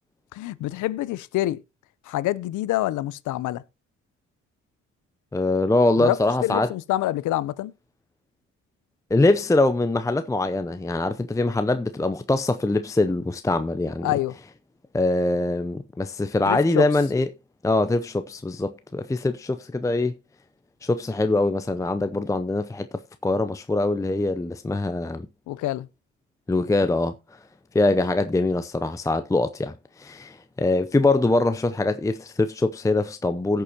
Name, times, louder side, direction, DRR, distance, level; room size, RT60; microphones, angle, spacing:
voice 1, 0.3-1.6 2.1-3.6 6.0-7.7 14.0-14.3 16.5-16.8 25.5-25.9, left 15 dB, 85° left, 0.7 m, -26 dB
voice 2, 5.3-6.7 9.1-14.1 14.9-17.3 17.6-20.1 20.8-25.3 26.5-27.1 27.7-33.6, left 2 dB, 10° left, 0.6 m, -23 dB
17.5 x 7.0 x 2.8 m
cardioid pair, 90°, 30 cm